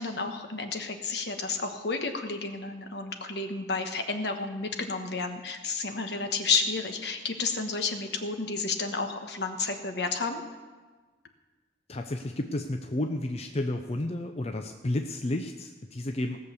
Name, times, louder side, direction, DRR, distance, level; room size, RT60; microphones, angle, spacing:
voice 1, 0.0-10.4, left 4 dB, 65° left, 5 dB, 1.3 m, -31 dB
voice 2, 11.9-16.4, left 1 dB, 35° left, 5 dB, 0.6 m, -31 dB
17.5 x 6.5 x 6.9 m, 1.3 s
head